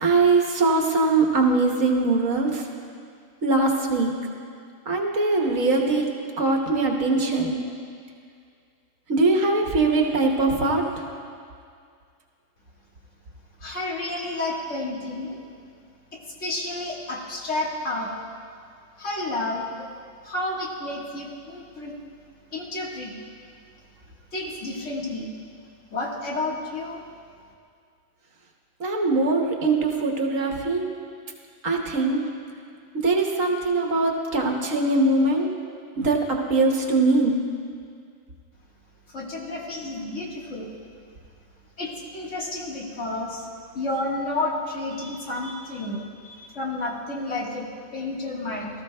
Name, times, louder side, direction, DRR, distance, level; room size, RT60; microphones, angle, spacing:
voice 1, 0.0-2.6 3.4-4.1 4.9-6.1 6.4-7.6 9.1-10.8 28.8-30.9 31.6-32.2 33.0-35.5 36.0-37.4, right 3 dB, 75° right, 1 dB, 1.6 m, -21 dB
voice 2, 13.6-15.4 16.1-18.1 19.0-19.7 20.2-21.9 22.5-23.2 24.3-25.3 25.9-27.0 39.1-40.7 41.8-43.5 43.7-47.7 47.9-48.7, left 2 dB, 60° left, -3 dB, 1.9 m, -31 dB
18.5 x 14.0 x 2.2 m, 2.2 s
omnidirectional pair, 1.4 m